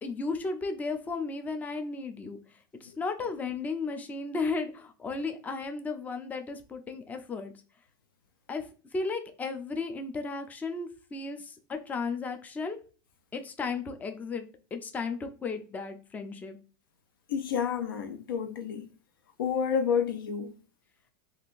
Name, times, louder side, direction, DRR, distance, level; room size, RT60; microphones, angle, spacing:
voice 1, 0.0-7.5 8.5-8.7 8.9-12.8 13.3-14.5 14.7-16.6, left 4 dB, 15° left, 0.4 m, -34 dB
voice 2, 17.3-18.9 19.4-20.5, left 7 dB, 90° left, 0.5 m, -29 dB
3.6 x 2.4 x 2.5 m
supercardioid pair, 130°, 11 cm